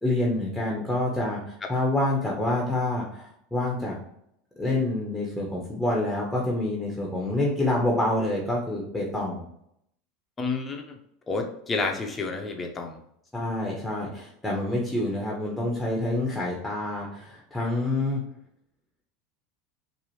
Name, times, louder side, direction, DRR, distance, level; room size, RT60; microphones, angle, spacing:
voice 1, 0.0-3.9 4.6-9.4 13.3-18.2, left 1 dB, 5° left, -1 dB, 1.1 m, -27 dB
voice 2, 10.4-11.0 11.3-13.0, left 3 dB, 20° left, 3 dB, 0.8 m, -30 dB
4.6 x 2.6 x 3.1 m, 0.72 s
hypercardioid pair, 105°, 0 cm